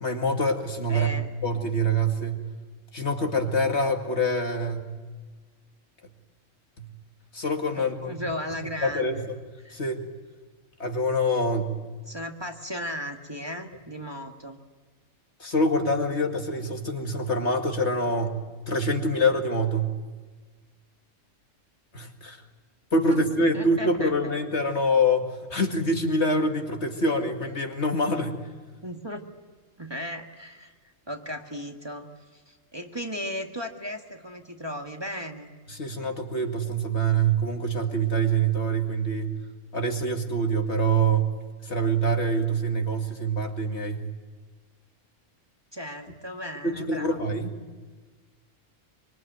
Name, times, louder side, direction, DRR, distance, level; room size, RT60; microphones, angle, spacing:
voice 1, 0.0-1.1 1.4-2.4 2.9-4.9 6.8-6.9 7.3-8.2 8.8-9.4 9.7-10.0 10.8-11.8 15.4-18.4 18.7-19.9 21.9-22.4 22.9-28.4 35.7-39.3 39.7-41.3 41.6-44.1 46.6-47.5, right 1 dB, 55° left, 4 dB, 2.5 m, -25 dB
voice 2, 0.9-1.3 7.8-9.3 9.6-9.8 12.1-14.6 23.1-23.2 23.5-24.1 28.8-29.2 29.8-35.5 45.7-47.3, equal, 20° right, 3 dB, 1.7 m, -36 dB
25.0 x 25.0 x 9.3 m, 1.4 s
omnidirectional pair, 1.3 m